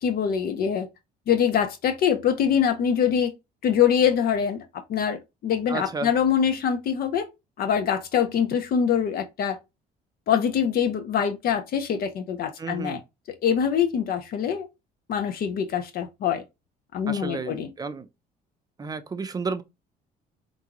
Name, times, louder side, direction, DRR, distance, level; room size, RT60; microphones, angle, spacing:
voice 1, 0.0-0.9 1.3-3.3 3.6-4.6 4.9-7.3 7.6-9.6 10.3-13.0 13.4-14.7 15.1-16.4 16.9-17.7, left 8 dB, 65° left, 0.7 m, -24 dB
voice 2, 5.7-6.1 12.6-13.0 17.1-18.1 18.8-19.6, right 4 dB, 20° right, 0.5 m, -32 dB
4.7 x 2.6 x 3.0 m
cardioid pair, 110°, 17 cm